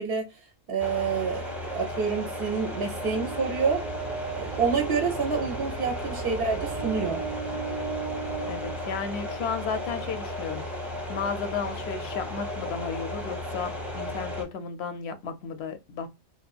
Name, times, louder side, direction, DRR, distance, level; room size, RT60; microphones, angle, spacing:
voice 1, 0.0-3.8 4.4-7.2, right 5 dB, 55° right, 0.8 m, -28 dB
sound 1, 0.8-14.5, left 1 dB, ahead, 0.6 m, -35 dB
sound 2, 2.8-9.7, right 6 dB, 90° right, 1.0 m, -37 dB
voice 2, 8.5-10.6 11.1-16.1, left 6 dB, 65° left, 0.7 m, -33 dB
2.8 x 2.2 x 2.3 m
omnidirectional pair, 1.3 m